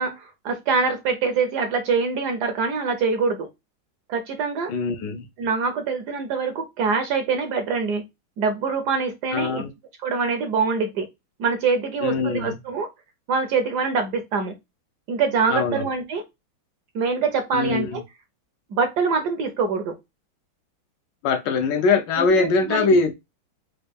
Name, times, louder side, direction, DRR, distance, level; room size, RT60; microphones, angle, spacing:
voice 1, 0.0-3.5 4.1-4.7 5.4-8.0 8.4-9.6 10.0-11.1 11.4-12.9 13.3-14.5 15.1-16.2 16.9-18.0 18.7-19.9 22.2-22.9, right 5 dB, 70° right, 1.0 m, -24 dB
voice 2, 4.7-5.3 9.3-9.7 12.0-12.6 15.5-15.8 17.5-18.0 21.2-23.1, left 4 dB, 75° left, 1.1 m, -22 dB
4.1 x 2.2 x 3.3 m
omnidirectional pair, 2.2 m